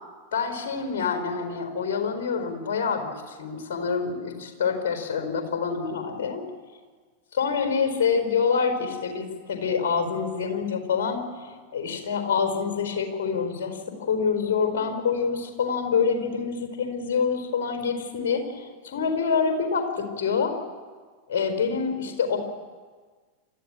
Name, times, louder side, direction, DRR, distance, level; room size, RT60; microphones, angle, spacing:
voice 1, 0.3-6.4 7.3-20.6 21.3-22.4, left 5 dB, 55° left, 6 dB, 4.4 m, -26 dB
28.5 x 13.5 x 8.7 m, 1.5 s
figure-of-eight pair, 90°, 0 cm